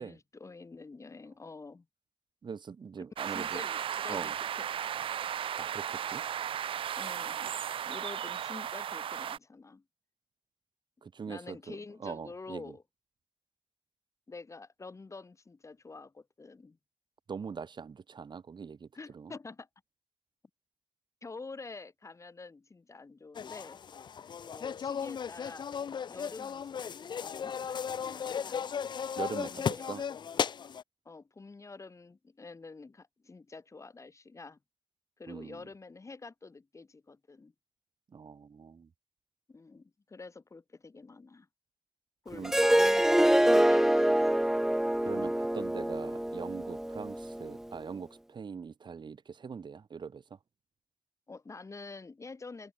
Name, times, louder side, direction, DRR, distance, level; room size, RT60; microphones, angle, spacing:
voice 1, 0.0-1.9 3.3-5.0 6.9-7.5 7.8-9.8 11.3-12.8 14.3-16.8 18.9-19.7 21.2-23.8 24.5-25.7 26.1-27.6 28.0-28.6 29.4-30.2 31.0-34.6 35.2-37.5 39.5-41.5 42.2-44.3 51.3-52.7, left 3 dB, 35° left, 2.4 m, -48 dB
voice 2, 2.4-3.6 4.1-4.4 5.6-6.2 11.0-12.8 17.3-18.9 19.1-19.3 29.2-30.0 35.3-35.7 38.1-38.9 42.3-42.5 45.0-50.4, right 6 dB, 60° right, 1.7 m, -42 dB
sound 1, 3.2-9.4, right 9 dB, 85° right, 0.4 m, -35 dB
sound 2, 23.3-30.8, left 7 dB, 60° left, 0.4 m, -36 dB
Harp, 42.4-47.6, right 1 dB, 5° right, 0.4 m, -26 dB
wide cardioid pair, 120°, 9 cm